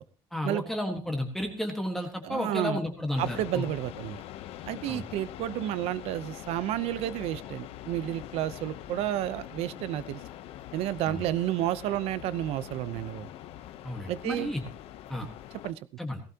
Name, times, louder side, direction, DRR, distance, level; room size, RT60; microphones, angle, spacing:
voice 1, 0.3-3.6 4.9-5.0 11.0-11.2 13.8-14.6 15.1-15.3 16.0-16.2, left 1 dB, 5° left, 3 dB, 1.5 m, -32 dB
voice 2, 2.2-2.8 3.2-4.2 4.7-10.2 10.7-13.3 14.1-14.5 15.6-15.8, right 13 dB, 85° right, 16 dB, 0.8 m, -31 dB
sound 1, 3.1-15.7, left 12 dB, 75° left, 0.9 m, -43 dB
18.0 x 16.0 x 2.9 m, 0.35 s
cardioid pair, 170°, 10 cm